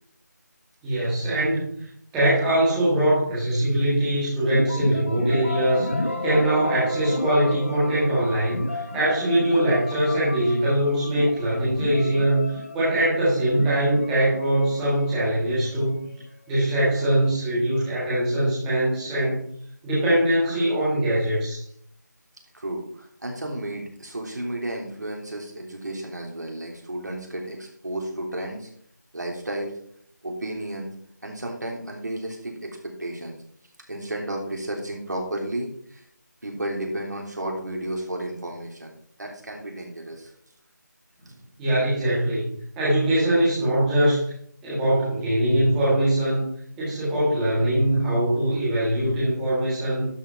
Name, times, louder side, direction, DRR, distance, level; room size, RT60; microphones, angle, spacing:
voice 1, 0.8-5.9 6.2-16.0 16.5-19.4 19.8-21.6 41.6-44.3 44.6-46.4 46.8-50.1, right 1 dB, 5° right, -10 dB, 1.6 m, -22 dB
sound 1, 4.5-16.3, left 2 dB, 40° left, 1.3 m, -33 dB
voice 2, 22.5-28.7 29.1-29.7 30.2-30.9 31.2-33.4 33.9-36.0 36.4-38.9 39.2-40.3, right 1 dB, 70° right, 1 dB, 3.2 m, -32 dB
12.0 x 5.7 x 4.4 m, 0.63 s
figure-of-eight pair, 175°, 10 cm